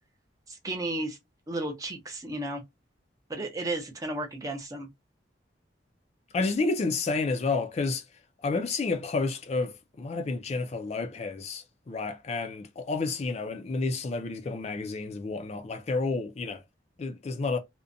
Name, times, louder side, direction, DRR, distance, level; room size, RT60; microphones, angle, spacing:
voice 1, 0.5-1.2 1.5-2.6 3.3-4.9, right 2 dB, 20° right, 0.5 m, -33 dB
voice 2, 6.3-8.0 8.4-16.6 17.0-17.6, left 3 dB, 35° left, 0.3 m, -30 dB
2.4 x 2.1 x 2.5 m
head